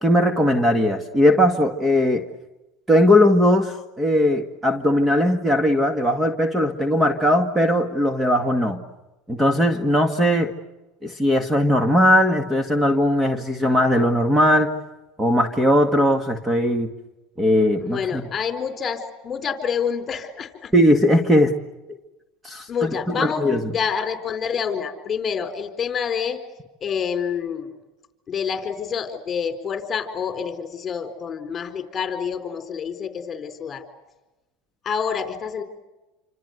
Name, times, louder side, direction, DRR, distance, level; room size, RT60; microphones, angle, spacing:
voice 1, 0.0-2.2 2.9-8.8 9.3-10.5 11.0-14.7 15.2-16.9 17.4-18.2 20.7-21.5 22.4-22.7 23.1-23.6, equal, 10° right, 7 dB, 1.9 m, -19 dB
voice 2, 17.8-20.7 22.7-23.4 23.7-26.4 26.8-27.7 28.3-33.8 34.8-35.6, left 7 dB, 30° left, 8 dB, 4.2 m, -27 dB
27.5 x 26.0 x 8.1 m, 1.1 s
supercardioid pair, 120°, 0 cm